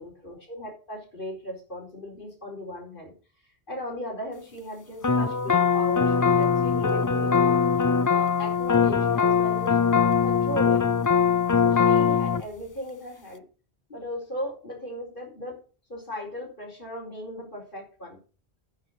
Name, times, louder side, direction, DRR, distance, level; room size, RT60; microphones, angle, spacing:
voice 1, 0.0-3.1 3.7-7.6 8.1-9.8 10.2-10.9 11.6-13.4 13.9-15.6 15.9-18.2, equal, 55° left, -7 dB, 4.9 m, -37 dB
sound 1, 5.0-12.4, left 6 dB, 30° left, 0.3 m, -21 dB
9.7 x 7.7 x 6.8 m, 0.37 s
omnidirectional pair, 1.1 m